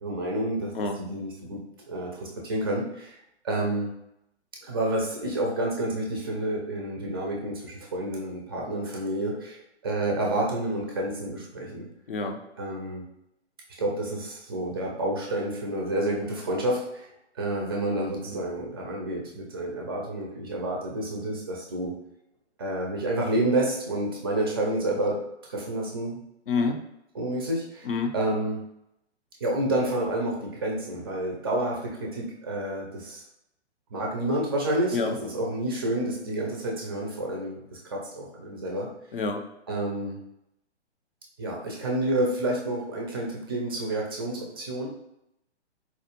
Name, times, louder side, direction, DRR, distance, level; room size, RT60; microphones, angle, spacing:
voice 1, 0.0-1.6 1.9-3.2 3.4-3.9 4.6-11.9 12.6-13.0 13.8-17.1 17.4-21.9 22.6-26.2 27.1-27.9 28.1-28.6 29.4-33.2 33.9-38.9 39.7-40.2 41.4-44.9, right 1 dB, 20° right, -1 dB, 0.4 m, -29 dB
voice 2, 12.1-12.4 26.5-26.8 27.8-28.1 34.9-35.2 39.1-39.5, left 4 dB, 50° left, 5 dB, 0.5 m, -27 dB
4.2 x 2.3 x 2.9 m, 0.82 s
figure-of-eight pair, 130°, 35 cm